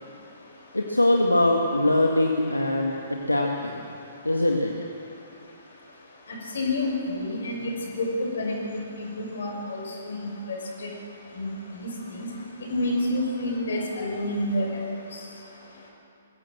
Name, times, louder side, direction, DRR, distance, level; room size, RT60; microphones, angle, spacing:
voice 1, 0.7-3.8 4.2-4.7, left 1 dB, 85° left, 1 dB, 1.8 m, -22 dB
voice 2, 6.5-10.9 11.4-11.5 11.8-11.9 12.1-12.3 12.7-14.7, left 1 dB, 60° left, 0 dB, 6.2 m, -29 dB
22.0 x 16.5 x 7.7 m, 2.7 s
figure-of-eight pair, 120°, 0 cm